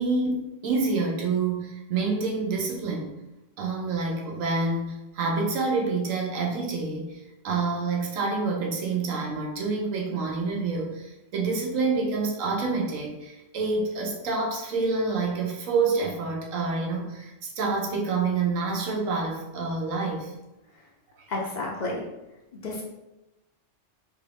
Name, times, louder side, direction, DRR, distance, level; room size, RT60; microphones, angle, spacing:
voice 1, 0.0-3.2 3.6-20.3 21.2-21.3, right 4 dB, 80° right, -1 dB, 1.1 m, -27 dB
voice 2, 21.3-22.1 22.5-22.8, left 2 dB, 50° left, -2 dB, 0.5 m, -31 dB
3.3 x 2.4 x 3.3 m, 0.96 s
omnidirectional pair, 1.3 m